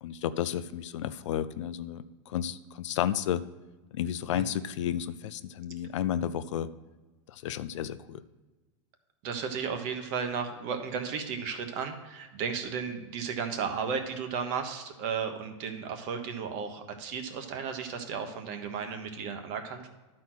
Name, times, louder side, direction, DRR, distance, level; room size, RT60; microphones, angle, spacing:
voice 1, 0.0-3.4 3.9-6.7 7.3-8.2, left 10 dB, 80° left, 13 dB, 0.5 m, -32 dB
voice 2, 9.2-19.9, right 6 dB, 45° right, 6 dB, 1.2 m, -34 dB
11.0 x 4.3 x 6.0 m, 1.2 s
supercardioid pair, 145°, 15 cm